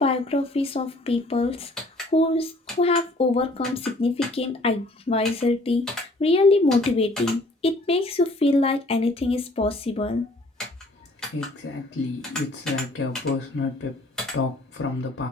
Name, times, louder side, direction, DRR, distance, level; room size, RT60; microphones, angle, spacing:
voice 1, 0.0-1.7 2.1-10.3, left 2 dB, 35° left, 0.3 m, -23 dB
sound 1, 1.8-2.1 2.7-3.0 3.6-3.9 4.2-4.5 5.2-5.4 5.9-6.0 6.7-6.9 7.2-7.4 10.6-10.8 11.2-11.5 12.2-12.9 13.1-13.3 14.2-14.4, left 1 dB, 5° left, 0.7 m, -32 dB
voice 2, 10.9-15.3, left 3 dB, 85° left, 0.5 m, -30 dB
2.5 x 2.2 x 3.0 m
head